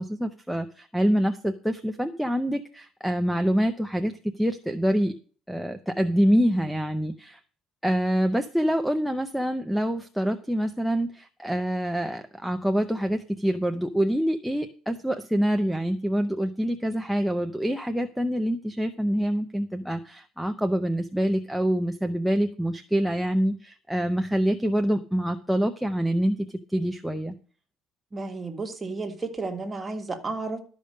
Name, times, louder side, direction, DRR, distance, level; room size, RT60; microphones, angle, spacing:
voice 1, 0.0-5.1 5.5-7.4 7.8-27.3, equal, ahead, 0.6 m, -26 dB
voice 2, 28.1-30.6, right 3 dB, 15° right, 1.6 m, -32 dB
12.5 x 5.2 x 6.5 m
cardioid pair, 155°, 0 cm